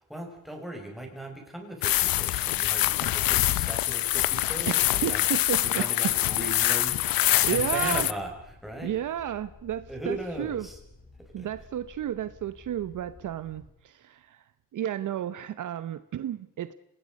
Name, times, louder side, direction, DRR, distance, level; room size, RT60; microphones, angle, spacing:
voice 1, 0.0-5.3 5.8-8.9 9.9-10.8 11.2-11.5, right 1 dB, ahead, 1 dB, 6.2 m, -38 dB
sound 1, 1.8-8.1, left 15 dB, 80° left, 0.7 m, -25 dB
voice 2, 4.7-5.8 7.4-8.1 8.8-10.7 11.3-14.4 14.7-16.7, right 10 dB, 60° right, 13 dB, 0.9 m, -32 dB
sound 2, 6.1-13.7, left 2 dB, 25° left, 4.6 m, -52 dB
29.0 x 19.5 x 5.3 m, 0.86 s
cardioid pair, 115°, 34 cm